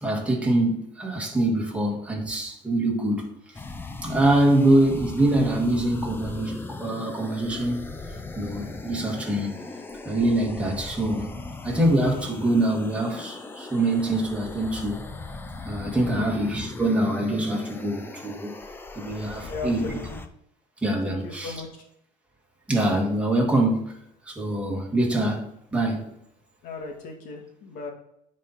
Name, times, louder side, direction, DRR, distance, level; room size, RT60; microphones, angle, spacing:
voice 1, 0.0-3.3 4.0-7.9 8.4-9.6 10.0-11.4 11.6-15.0 15.7-18.6 19.0-19.9 20.8-21.6 22.7-24.0 24.3-26.1, right 1 dB, 10° right, 1.8 m, -24 dB
sound 1, 3.5-20.3, left 3 dB, 15° left, 0.6 m, -38 dB
voice 2, 16.0-16.3 19.4-20.2 21.0-21.7 26.6-27.9, left 3 dB, 65° left, 2.1 m, -36 dB
10.0 x 4.3 x 4.2 m
cardioid pair, 130°, 15 cm